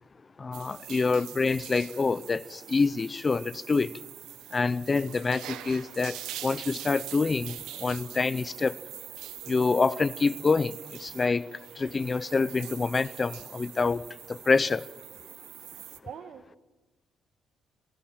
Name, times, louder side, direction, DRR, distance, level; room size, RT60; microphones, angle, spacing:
voice 1, 0.4-3.9 4.5-6.2 6.4-7.5 7.8-8.7 9.5-10.7 11.0-11.4 11.8-14.0 14.3-14.8, left 4 dB, 30° left, 0.6 m, -26 dB
sound 1, 0.5-16.0, right 13 dB, 90° right, 1.2 m, -43 dB
voice 2, 16.0-16.6, right 8 dB, 70° right, 1.6 m, -43 dB
26.0 x 16.0 x 7.5 m
cardioid pair, 90°, 0 cm